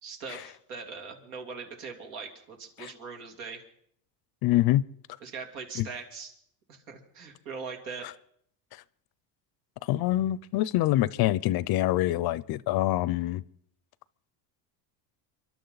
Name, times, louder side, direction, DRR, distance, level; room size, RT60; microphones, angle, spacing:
voice 1, 0.0-3.6 5.2-6.3 6.7-8.1, right 5 dB, 85° right, 3.2 m, -41 dB
voice 2, 4.4-4.8 5.8-5.9 8.0-8.1 8.7-8.8 9.8-13.4, left 15 dB, 50° left, 0.5 m, -25 dB
28.0 x 12.0 x 4.0 m
cardioid pair, 120°, 49 cm